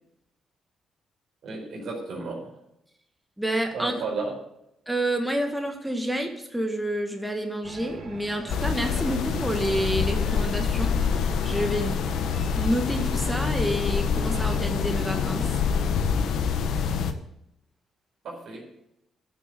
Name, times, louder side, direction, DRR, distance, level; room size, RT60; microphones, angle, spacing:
voice 1, 1.4-2.5 3.7-4.3 18.2-18.7, right 3 dB, 65° right, -2 dB, 4.7 m, -33 dB
voice 2, 3.4-4.0 4.9-12.0 12.5-15.6, right 1 dB, 5° right, 3 dB, 1.6 m, -29 dB
sound 1, 7.6-14.6, right 3 dB, 50° right, 2.9 m, -42 dB
sound 2, 8.5-17.1, left 6 dB, 75° left, 1.1 m, -26 dB
12.0 x 7.0 x 7.7 m, 0.80 s
cardioid pair, 90°, 0 cm